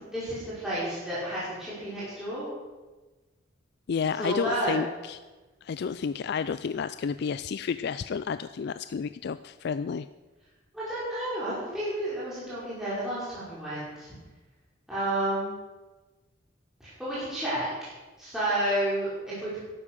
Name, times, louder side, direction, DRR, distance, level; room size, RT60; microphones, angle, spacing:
voice 1, 0.1-2.4 4.2-4.8 10.7-14.1 14.9-15.5 16.8-17.9 18.2-19.6, right 1 dB, 5° right, -11 dB, 5.5 m, -31 dB
voice 2, 3.9-5.2 5.6-10.1, left 6 dB, 60° left, 13 dB, 0.4 m, -31 dB
12.5 x 11.0 x 6.4 m, 1.2 s
head